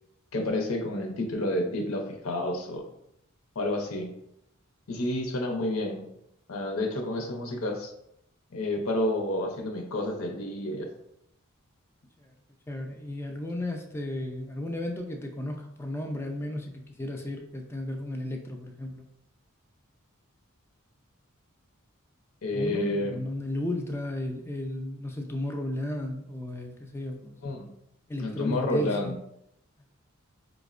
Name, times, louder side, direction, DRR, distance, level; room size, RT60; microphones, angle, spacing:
voice 1, 0.3-2.8 3.6-4.1 4.9-6.1 6.5-7.9 8.5-10.9 22.4-23.2 27.4-27.6 28.2-29.1, left 1 dB, 75° left, 3 dB, 0.6 m, -29 dB
voice 2, 12.7-19.1 22.5-27.4 28.1-29.2, left 1 dB, 10° left, 3 dB, 0.3 m, -34 dB
4.9 x 2.0 x 2.4 m, 0.78 s
head